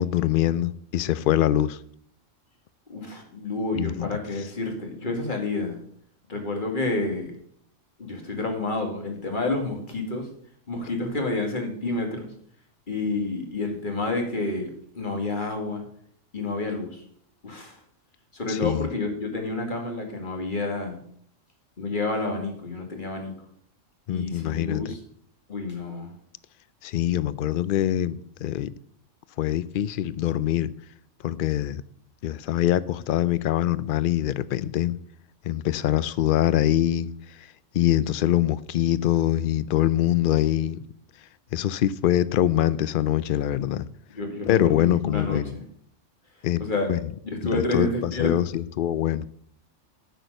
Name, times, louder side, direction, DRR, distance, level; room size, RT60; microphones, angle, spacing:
voice 1, 0.0-1.8 3.8-4.1 18.5-18.9 24.1-24.9 26.8-28.7 29.4-30.7 31.2-31.8 32.2-35.0 35.4-37.1 37.7-40.8 41.5-43.8 44.5-45.5 46.4-46.6 46.9-47.0 47.5-49.3, left 12 dB, 60° left, 0.5 m, -24 dB
voice 2, 2.9-5.8 6.3-7.3 8.0-10.3 10.7-12.3 12.9-15.9 16.3-17.0 17.4-17.8 18.3-21.0 21.8-23.3 24.1-25.0 25.5-26.1 44.2-45.6 46.6-46.9 47.2-48.5, left 2 dB, 40° left, 2.2 m, -29 dB
9.2 x 6.6 x 6.4 m
omnidirectional pair, 1.3 m